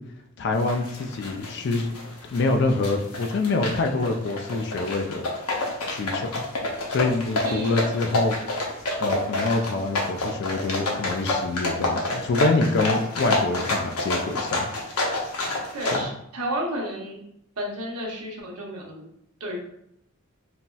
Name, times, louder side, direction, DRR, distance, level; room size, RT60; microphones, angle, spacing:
voice 1, 0.4-1.9 2.3-5.2 5.9-6.3 6.9-8.4 9.0-14.7 15.9-16.1, left 3 dB, 50° left, 5 dB, 0.3 m, -25 dB
sound 1, 0.5-16.0, left 2 dB, 90° left, 0.7 m, -28 dB
voice 2, 7.4-7.8 15.7-17.2 17.6-19.1 19.4-19.7, equal, 90° right, -1 dB, 0.8 m, -32 dB
4.0 x 2.0 x 2.2 m, 0.76 s
head